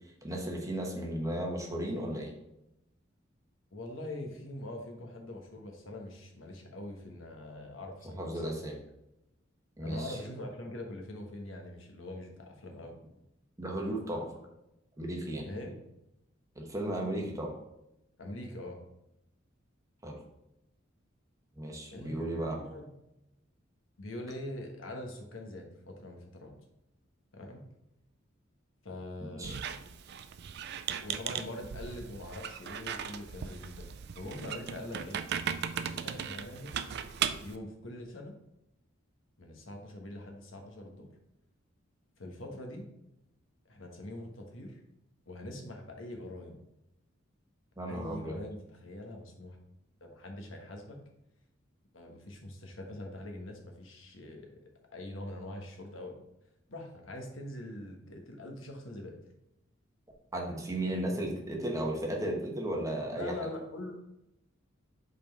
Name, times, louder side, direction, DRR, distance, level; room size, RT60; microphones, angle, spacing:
voice 1, 0.2-2.3 8.2-8.8 9.8-10.2 13.6-14.3 15.0-15.5 16.5-17.5 20.0-20.2 21.6-22.6 29.2-29.6 47.8-48.4 60.3-63.3, right 1 dB, 15° right, 0 dB, 1.1 m, -35 dB
voice 2, 3.7-8.6 9.8-13.0 15.4-15.8 18.2-18.8 21.7-22.9 24.0-26.5 27.3-27.6 28.8-29.6 31.0-33.9 34.1-35.2 35.9-36.8 37.4-38.3 39.4-41.1 42.2-42.8 43.7-44.8 45.3-46.6 47.9-49.6 50.0-51.0 51.9-54.6 54.9-56.2 56.7-59.2 63.1-63.9, left 1 dB, 80° left, 2 dB, 1.2 m, -43 dB
Squeak, 29.4-37.6, right 8 dB, 55° right, 0.4 m, -37 dB
5.3 x 4.2 x 4.6 m, 0.86 s
head